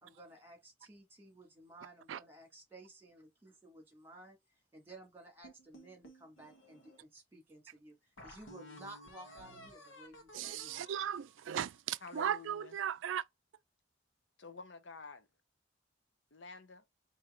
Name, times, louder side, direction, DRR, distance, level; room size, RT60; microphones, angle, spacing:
voice 1, 0.0-10.9, right 2 dB, 10° right, 2.0 m, -55 dB
sound 1, 5.4-7.0 7.5-7.6 8.2-12.4, equal, 85° left, 1.2 m, -55 dB
voice 2, 10.3-13.2, right 9 dB, 75° right, 0.3 m, -37 dB
voice 3, 12.0-12.8 14.4-15.3 16.3-16.8, left 4 dB, 70° left, 0.8 m, -50 dB
4.7 x 2.9 x 3.7 m
head